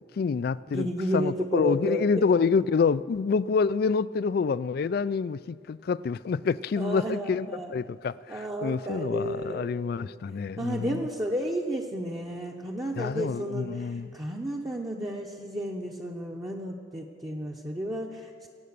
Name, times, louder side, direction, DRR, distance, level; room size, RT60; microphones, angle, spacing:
voice 1, 0.1-0.9 1.1-7.5 7.7-11.0 13.0-14.2, left 5 dB, 55° left, 0.3 m, -27 dB
voice 2, 0.7-2.4 6.8-7.7 8.3-9.7 10.6-18.5, equal, 20° right, 0.9 m, -32 dB
23.0 x 8.8 x 6.7 m
head